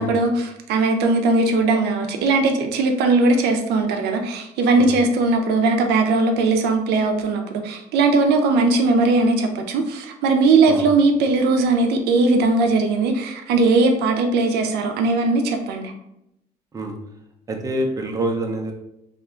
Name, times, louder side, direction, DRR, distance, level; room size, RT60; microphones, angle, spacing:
voice 1, 0.0-15.9, right 3 dB, 80° right, 5 dB, 0.5 m, -19 dB
voice 2, 17.5-18.7, right 1 dB, 20° right, 3 dB, 0.5 m, -26 dB
2.9 x 2.2 x 3.6 m, 0.82 s
cardioid pair, 110°, 17 cm